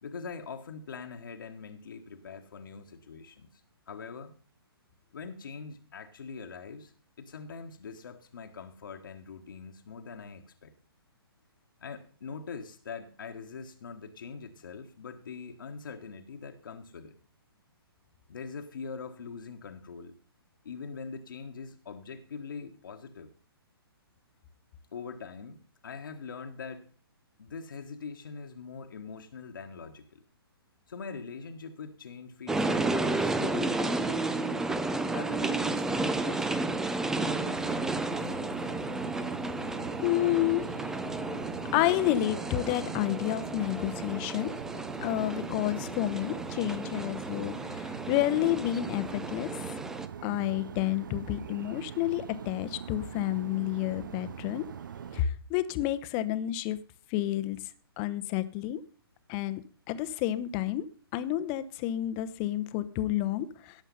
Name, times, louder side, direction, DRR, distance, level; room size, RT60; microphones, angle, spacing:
voice 1, 0.0-3.6 3.9-4.4 5.1-6.9 7.2-10.7 11.8-17.2 18.3-20.2 20.6-23.3 24.9-26.9 27.4-30.2 30.9-34.7 35.1-37.8, left 5 dB, 55° left, 6 dB, 1.5 m, -43 dB
sound 1, 32.5-50.1, right 2 dB, 5° right, 0.5 m, -32 dB
sound 2, 37.4-55.2, right 8 dB, 50° right, 0.6 m, -42 dB
voice 2, 40.0-40.6 41.7-44.5 45.0-49.5 50.2-54.6 55.1-56.8 57.1-57.6 58.0-58.8 59.3-59.6 59.9-60.8 61.1-63.7, left 14 dB, 25° left, 12 dB, 0.9 m, -30 dB
17.0 x 7.2 x 5.5 m, 0.40 s
figure-of-eight pair, 125°, 13 cm